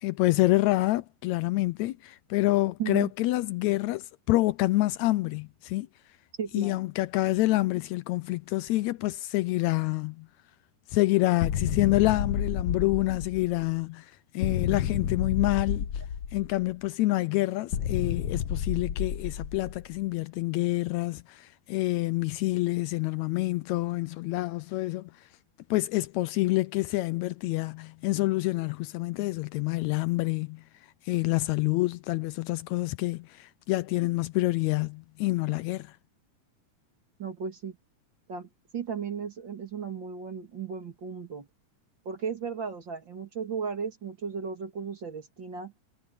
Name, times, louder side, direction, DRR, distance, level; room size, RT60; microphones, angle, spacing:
voice 1, 0.0-5.9 6.5-10.3 10.9-14.1 14.3-15.9 16.3-25.1 25.7-30.6 31.1-35.9, left 19 dB, 80° left, 1.6 m, -27 dB
voice 2, 2.8-3.1 6.4-6.8 37.2-37.8 38.3-41.5 42.1-45.7, right 6 dB, 40° right, 2.5 m, -35 dB
sound 1, 11.4-13.7 14.4-16.7 17.7-20.0, left 8 dB, 65° left, 1.2 m, -30 dB
omnidirectional pair, 3.6 m